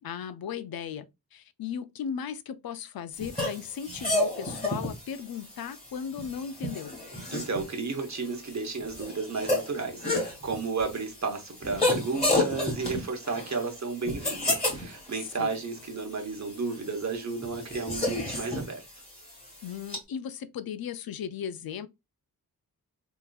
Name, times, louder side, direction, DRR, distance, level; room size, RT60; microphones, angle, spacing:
voice 1, 0.0-1.1 1.3-6.9 15.4-15.5 19.6-21.9, left 8 dB, 65° left, 0.5 m, -36 dB
sound 1, 3.2-20.0, left 1 dB, 15° left, 1.9 m, -32 dB
voice 2, 7.3-18.8, right 4 dB, 45° right, 1.0 m, -33 dB
3.7 x 2.9 x 2.3 m
wide cardioid pair, 120°, 38 cm